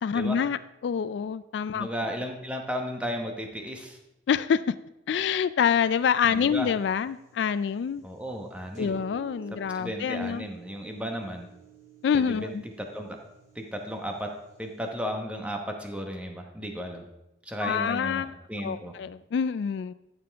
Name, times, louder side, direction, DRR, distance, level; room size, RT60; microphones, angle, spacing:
voice 1, 0.0-1.9 4.3-4.7 5.1-8.0 8.8-10.5 12.0-12.6 17.6-18.3 18.6-19.9, left 7 dB, 70° left, 15 dB, 0.3 m, -26 dB
voice 2, 1.7-4.0 6.3-6.7 8.0-8.9 9.7-11.5 12.1-13.2 13.5-14.3 14.6-17.0 17.4-18.9, equal, 5° right, 3 dB, 1.0 m, -34 dB
sound 1, 5.7-14.9, right 7 dB, 40° right, 3.2 m, -52 dB
12.5 x 6.7 x 3.4 m, 0.93 s
head